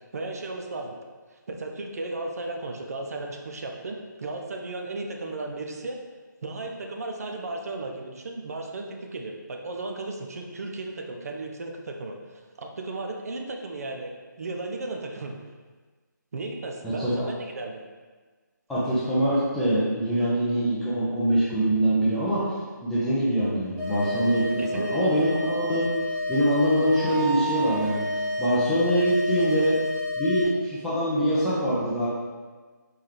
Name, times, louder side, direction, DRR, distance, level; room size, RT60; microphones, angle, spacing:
voice 1, 0.1-1.0 1.3-6.0 6.4-8.9 9.1-15.4 16.3-17.8 24.4-25.0, right 2 dB, 50° right, 2 dB, 0.6 m, -35 dB
voice 2, 16.8-17.3 18.7-22.4 22.8-25.9 26.3-28.1 28.4-29.8 30.2-32.1, equal, 5° left, -11 dB, 0.4 m, -24 dB
sound 1, 23.8-30.4, left 1 dB, 25° right, 1.0 m, -30 dB
4.5 x 3.5 x 3.2 m, 1.4 s
figure-of-eight pair, 155°, 11 cm